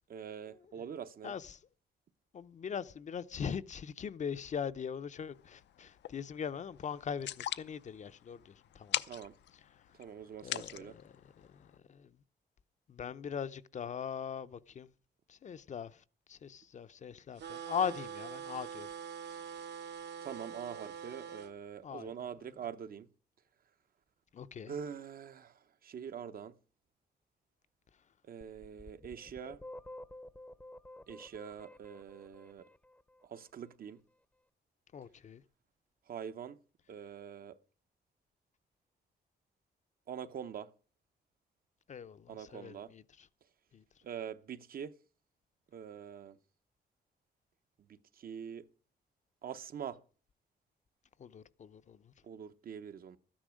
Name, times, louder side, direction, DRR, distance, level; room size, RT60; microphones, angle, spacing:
voice 1, 0.1-1.4 9.0-9.3 10.0-11.0 20.2-23.1 24.7-26.5 28.2-29.6 31.1-32.7 33.2-34.0 36.1-36.6 36.9-37.5 40.1-40.7 42.3-42.9 44.0-44.9 45.7-46.4 47.9-48.6 49.4-50.0 52.2-53.2, right 8 dB, 55° right, 0.9 m, -44 dB
voice 2, 1.2-1.6 2.3-7.3 7.6-9.0 10.4-12.1 12.9-14.9 15.3-16.0 16.3-18.9 19.3-19.4 21.8-22.1 24.3-24.7 34.9-35.4 41.9-43.0 43.7-43.8 51.2-52.1, left 7 dB, 45° left, 0.6 m, -41 dB
sound 1, 5.2-11.8, left 12 dB, 85° left, 0.6 m, -43 dB
sound 2, 17.4-21.5, right 7 dB, 75° right, 1.2 m, -44 dB
sound 3, 28.4-33.3, left 1 dB, 10° left, 0.7 m, -51 dB
13.0 x 10.0 x 6.3 m
wide cardioid pair, 140°, 18 cm